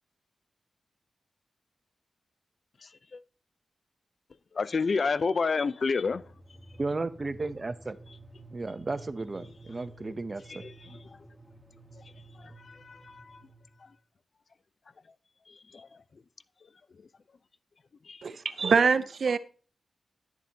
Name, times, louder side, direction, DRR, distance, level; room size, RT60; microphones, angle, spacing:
voice 1, 2.8-3.2 4.5-6.2 10.6-11.0 12.4-13.4 15.7-15.9 18.1-18.2, left 4 dB, 60° left, 0.5 m, -30 dB
sound 1, 6.1-13.9, right 2 dB, ahead, 1.4 m, -51 dB
voice 2, 6.8-8.0 8.5-10.6, right 3 dB, 40° right, 0.7 m, -34 dB
voice 3, 18.2-19.4, right 5 dB, 70° right, 0.6 m, -24 dB
11.0 x 7.3 x 2.8 m
cardioid pair, 65°, 0 cm